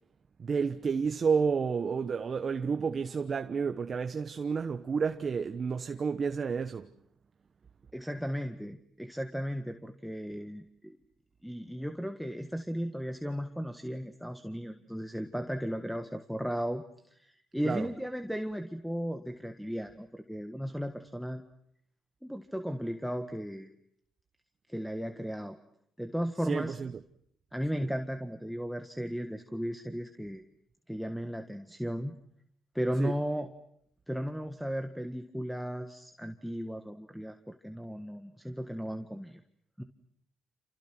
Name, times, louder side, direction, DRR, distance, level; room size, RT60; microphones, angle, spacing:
voice 1, 0.4-6.9 17.6-17.9 26.5-26.9 27.8-27.9 33.0-33.1, right 5 dB, 45° right, 1.0 m, -30 dB
voice 2, 7.9-11.0 11.4-16.8 17.1-21.4 22.2-23.7 24.7-25.6 26.0-26.7 27.5-30.4 30.9-32.1 32.7-33.5 34.1-39.4 39.8-39.9, equal, ahead, 1.6 m, -35 dB
29.5 x 28.5 x 6.2 m
cardioid pair, 90°, 0 cm